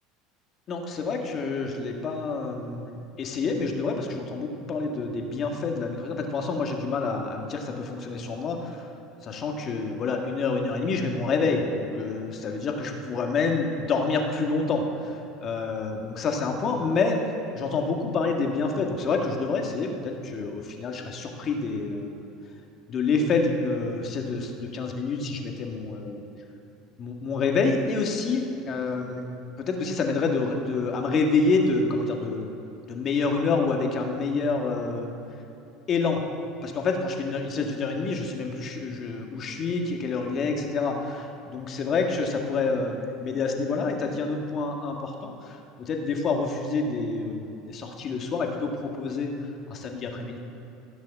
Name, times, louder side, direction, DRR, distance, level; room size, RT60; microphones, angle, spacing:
voice 1, 0.7-8.9 9.2-17.2 17.5-22.2 22.9-26.2 27.0-29.2 29.6-32.5 32.9-35.2 35.9-36.2 36.6-50.4, left 4 dB, 40° left, 2 dB, 1.8 m, -28 dB
15.0 x 6.3 x 7.5 m, 3.0 s
supercardioid pair, 105°, 0 cm